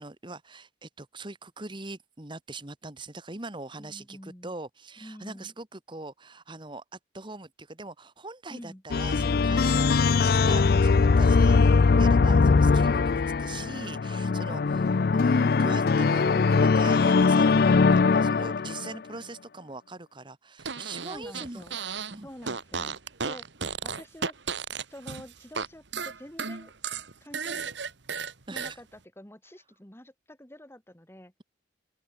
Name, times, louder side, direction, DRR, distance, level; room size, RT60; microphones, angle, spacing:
voice 1, 0.0-11.7 12.0-21.6 22.1-22.3 28.5-28.8, right 2 dB, 25° right, 1.6 m, -42 dB
voice 2, 3.8-4.5 5.0-5.5 8.5-8.8 21.0-21.8 22.2-23.0 23.2-23.5 23.8-24.3 24.9-26.7 27.2-27.7 28.5-31.3, equal, 15° left, 1.9 m, -47 dB
sound 1, 8.9-18.9, left 4 dB, 55° left, 0.4 m, -21 dB
Fart, 20.6-22.2 22.4-25.7 25.9-28.7, right 5 dB, 75° right, 1.6 m, -34 dB
open air
head